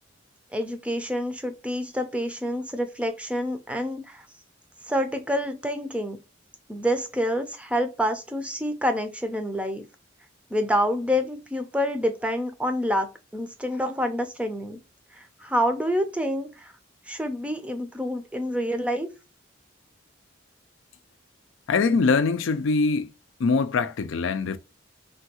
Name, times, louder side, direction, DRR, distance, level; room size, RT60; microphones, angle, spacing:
voice 1, 0.5-4.2 4.9-6.2 6.7-9.8 10.5-14.8 15.2-16.7 17.1-19.1, equal, 5° right, 0.5 m, -27 dB
voice 2, 21.7-23.1 23.4-24.6, left 4 dB, 80° left, 0.4 m, -23 dB
3.4 x 2.3 x 2.8 m
head